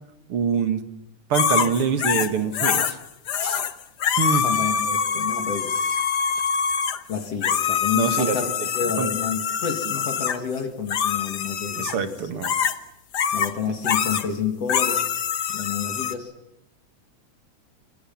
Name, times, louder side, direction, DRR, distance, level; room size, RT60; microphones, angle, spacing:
voice 1, 0.3-0.9 1.3-3.0 3.4-3.6 4.2-4.5 7.9-8.4 9.0-9.1 11.8-12.5, right 6 dB, 50° right, 9 dB, 2.4 m, -25 dB
sound 1, 1.3-2.9 3.3-3.7 4.0-10.4 10.9-12.0 12.4-12.8 13.1-13.5 13.8-14.3 14.7-16.1, left 7 dB, 70° left, 0.9 m, -24 dB
voice 2, 4.4-6.1 7.1-8.5 8.7-12.2 13.3-16.3, left 6 dB, 55° left, 6 dB, 3.2 m, -30 dB
25.5 x 25.5 x 7.2 m, 0.86 s
omnidirectional pair, 3.5 m